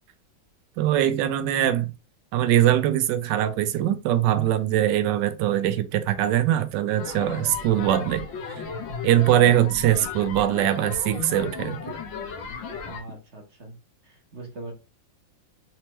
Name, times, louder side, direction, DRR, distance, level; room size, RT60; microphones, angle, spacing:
voice 1, 0.8-1.9 2.3-8.3 9.0-11.8, right 12 dB, 70° right, 1.1 m, -22 dB
sound 1, 7.0-13.0, left 5 dB, 75° left, 1.5 m, -35 dB
voice 2, 12.8-13.8 14.0-14.7, right 2 dB, 40° right, 1.2 m, -41 dB
4.4 x 2.9 x 3.0 m
omnidirectional pair, 2.1 m